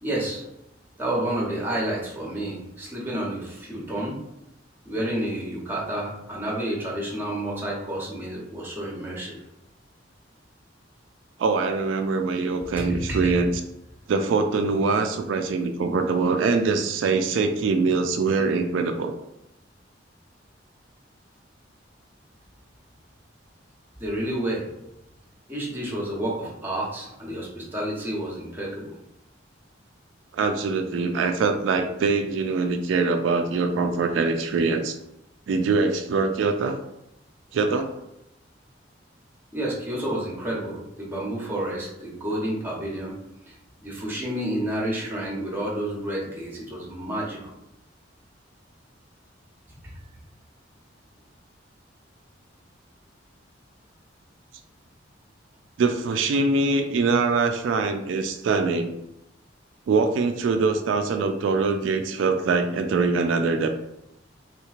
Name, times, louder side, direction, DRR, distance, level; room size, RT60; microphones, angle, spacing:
voice 1, 0.0-0.4 1.0-4.2 4.8-9.4 12.8-13.4 24.0-24.7 25.5-29.0 39.5-43.1 43.5-43.6 43.8-47.4 49.7-50.0, right 1 dB, 10° right, -3 dB, 0.9 m, -30 dB
voice 2, 11.4-13.5 14.1-19.2 30.3-35.0 35.5-36.8 37.5-37.9 55.8-58.9 59.9-63.7, right 4 dB, 80° right, 6 dB, 0.3 m, -23 dB
3.5 x 3.0 x 2.4 m, 0.84 s
head